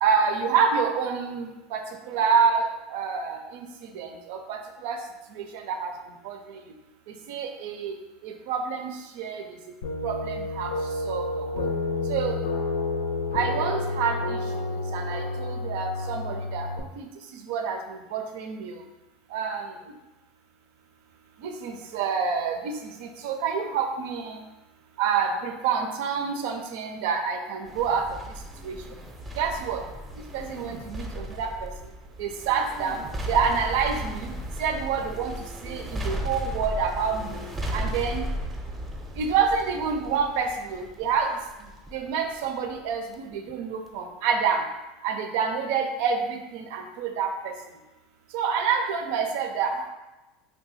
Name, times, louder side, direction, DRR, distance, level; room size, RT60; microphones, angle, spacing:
voice 1, 0.0-5.0 5.3-5.9 6.2-6.6 7.1-8.0 8.2-9.4 10.0-10.7 11.0-11.7 12.1-12.4 13.3-14.4 14.9-17.1 17.3-18.8 19.3-19.8 21.4-24.4 25.0-28.1 28.6-28.8 29.4-29.8 30.3-31.7 32.2-34.3 34.6-35.3 35.6-37.5 37.7-38.2 39.2-41.3 41.6-44.6 45.0-47.5 48.3-49.9, right 6 dB, 70° right, 4 dB, 0.4 m, -28 dB
sound 1, 9.8-16.8, left 2 dB, 80° left, 0.4 m, -30 dB
sound 2, 27.6-43.1 43.5-43.6, equal, 15° right, 0.6 m, -35 dB
2.8 x 2.2 x 4.0 m, 1.1 s
hypercardioid pair, 90°, 0 cm